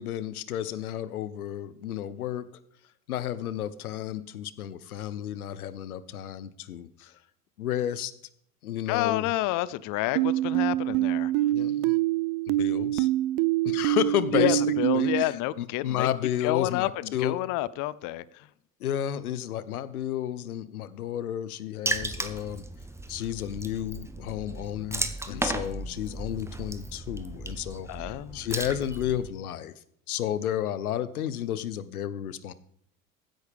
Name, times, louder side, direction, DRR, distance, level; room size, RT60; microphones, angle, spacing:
voice 1, 0.0-2.5 3.1-7.1 7.6-8.1 8.6-9.3 11.5-11.9 12.5-13.1 13.6-14.6 14.9-17.4 18.8-22.6 23.1-29.7 30.1-32.5, left 11 dB, 80° left, 0.9 m, -32 dB
voice 2, 8.9-11.3 14.4-16.1 16.4-18.2 25.3-26.1 27.9-28.4, left 15 dB, 45° left, 0.7 m, -29 dB
sound 1, 10.2-15.2, right 15 dB, 50° right, 0.6 m, -25 dB
Water / Splash splatter, 21.9-29.3, right 2 dB, 5° right, 1.1 m, -35 dB
15.5 x 10.5 x 3.5 m
figure-of-eight pair, 70°, 43 cm